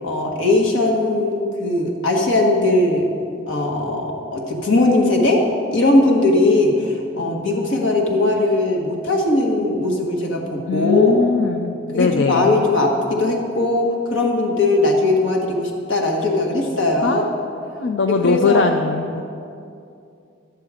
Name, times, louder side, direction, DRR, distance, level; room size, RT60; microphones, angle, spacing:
voice 1, 0.0-3.1 3.5-11.2 11.9-17.2 18.2-18.6, left 2 dB, 90° left, 0 dB, 1.5 m, -19 dB
voice 2, 10.7-12.6 17.0-17.3 17.6-19.2, left 4 dB, 70° left, 5 dB, 0.4 m, -21 dB
12.0 x 6.7 x 4.9 m, 2.5 s
head